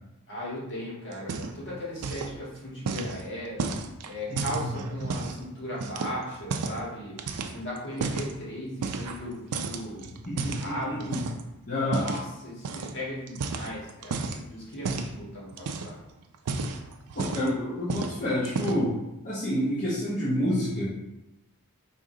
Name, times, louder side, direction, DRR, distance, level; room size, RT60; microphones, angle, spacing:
voice 1, 0.3-3.7 4.0-7.1 7.5-11.1 11.7-16.0, equal, 55° left, -6 dB, 1.7 m, -37 dB
sound 1, 1.1-1.7 2.0-2.4 2.9-5.4 5.8-6.8 7.2-8.3 8.8-9.3 9.5-11.4 11.9-12.2 12.6-12.9 13.3-14.4 14.8-15.1 15.5-16.0 16.3-17.6 17.9-18.2 18.4-18.9, right 4 dB, 85° right, 0.4 m, -32 dB
voice 2, 4.3-4.7 10.3-11.2 11.7-12.1 17.1-19.0 19.2-20.9, left 1 dB, 35° left, -10 dB, 1.0 m, -28 dB
5.0 x 2.7 x 3.7 m, 0.93 s
head